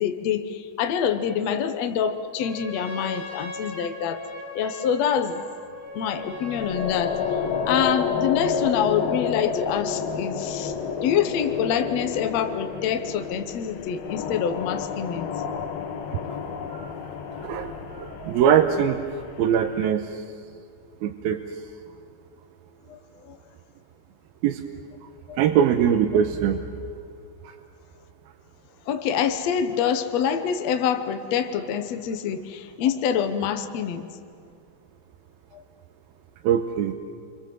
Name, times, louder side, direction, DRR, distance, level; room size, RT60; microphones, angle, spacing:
voice 1, 0.0-4.2 4.6-5.4 5.9-7.2 7.7-10.7 11.0-15.3 17.9-18.0 22.9-23.4 25.3-25.4 28.9-34.1 35.5-35.6, left 8 dB, 65° left, 7 dB, 1.8 m, -26 dB
Trumpet, 2.3-7.8, left 1 dB, 40° left, 5.8 m, -39 dB
sound 1, 6.3-19.9, left 6 dB, 80° left, 3.3 m, -30 dB
voice 2, 17.4-19.0 19.4-20.2 21.0-21.4 24.4-24.6 25.4-26.6 36.4-36.9, right 9 dB, 90° right, 6 dB, 2.7 m, -22 dB
29.0 x 24.5 x 7.9 m, 2.3 s
omnidirectional pair, 4.2 m